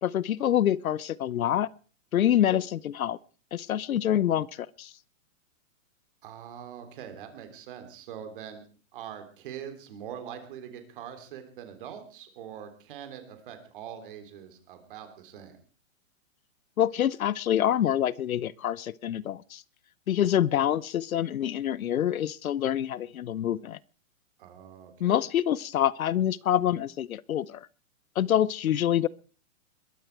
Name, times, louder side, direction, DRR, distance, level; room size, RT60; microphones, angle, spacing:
voice 1, 0.0-1.7 2.1-3.2 3.5-4.9 16.8-19.6 20.1-23.8 25.0-27.7 28.2-29.1, left 11 dB, 90° left, 0.9 m, -26 dB
voice 2, 6.2-8.6 8.9-15.6 24.4-25.2, right 9 dB, 40° right, 3.5 m, -43 dB
21.5 x 13.5 x 4.7 m
hypercardioid pair, 170°, 41 cm